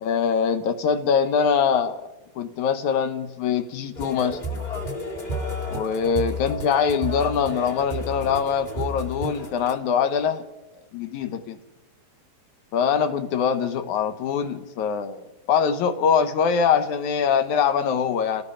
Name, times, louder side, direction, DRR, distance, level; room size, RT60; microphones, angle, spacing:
voice 1, 0.0-2.1 2.4-4.4 5.7-10.4 10.9-11.6 12.7-18.4, left 7 dB, 75° left, 9 dB, 2.6 m, -23 dB
sound 1, 3.9-9.7, left 1 dB, 20° left, 1.5 m, -32 dB
29.0 x 18.0 x 5.0 m, 1.0 s
omnidirectional pair, 3.5 m